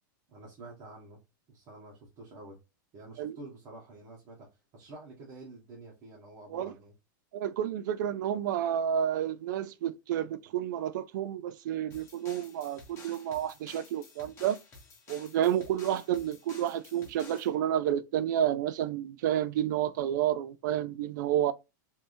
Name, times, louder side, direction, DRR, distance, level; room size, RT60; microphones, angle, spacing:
voice 1, 0.3-1.2 1.5-2.6 2.9-6.9, right 2 dB, 35° right, 1.3 m, -49 dB
voice 2, 7.3-14.6 15.1-21.5, right 10 dB, 65° right, 0.4 m, -30 dB
sound 1, 11.9-17.5, left 3 dB, 25° left, 1.1 m, -52 dB
3.4 x 2.7 x 2.6 m
supercardioid pair, 155°, 11 cm